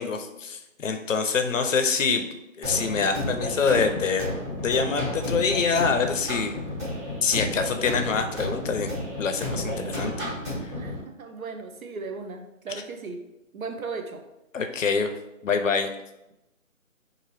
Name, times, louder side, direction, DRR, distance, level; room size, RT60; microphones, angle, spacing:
voice 1, 0.0-2.2 2.6-4.3 4.6-6.5 7.2-8.9 9.2-10.1 10.6-10.7 14.5-15.1 15.4-15.9, left 5 dB, 70° left, 6 dB, 0.5 m, -25 dB
voice 2, 1.3-1.7 10.7-13.2 13.5-14.2, right 4 dB, 80° right, 6 dB, 0.6 m, -37 dB
sound 1, 2.6-11.0, left 1 dB, 15° right, 1.4 m, -32 dB
2.8 x 2.6 x 2.9 m, 0.92 s
figure-of-eight pair, 155°, 41 cm